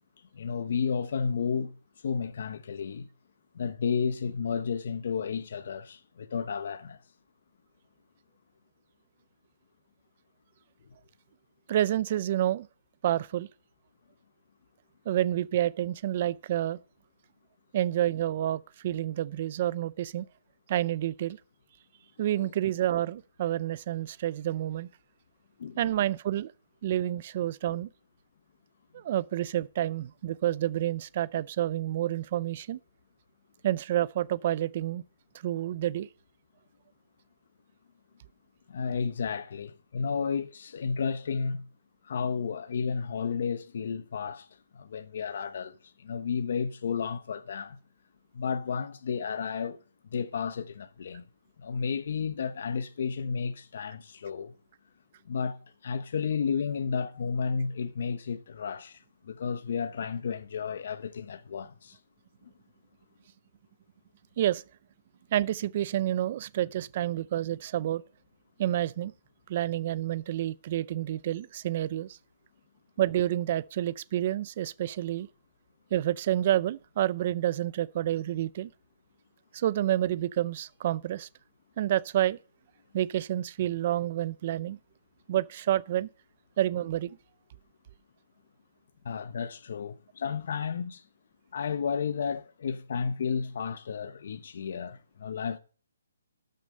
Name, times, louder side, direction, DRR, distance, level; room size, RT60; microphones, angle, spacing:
voice 1, 0.3-1.7 2.0-3.1 3.5-7.0 22.4-22.5 25.6-25.9 27.7-27.8 38.7-41.6 42.0-44.5 44.7-47.8 48.3-49.8 50.0-51.2 51.6-54.5 55.3-62.0 62.4-62.5 89.0-91.0 91.5-95.6, left 6 dB, 45° left, 0.8 m, -32 dB
voice 2, 11.7-12.7 13.0-13.5 15.1-16.8 17.7-20.3 20.7-21.4 22.2-24.9 25.8-26.5 26.8-27.9 28.9-32.8 33.6-35.0 35.4-36.1 64.4-64.6 65.3-68.0 68.6-69.1 69.5-72.2 73.0-75.3 75.9-78.7 79.5-81.3 81.8-82.4 82.9-84.8 85.3-86.1 86.6-87.2, right 12 dB, 30° right, 0.4 m, -29 dB
12.0 x 6.6 x 6.4 m
hypercardioid pair, 170°, 0 cm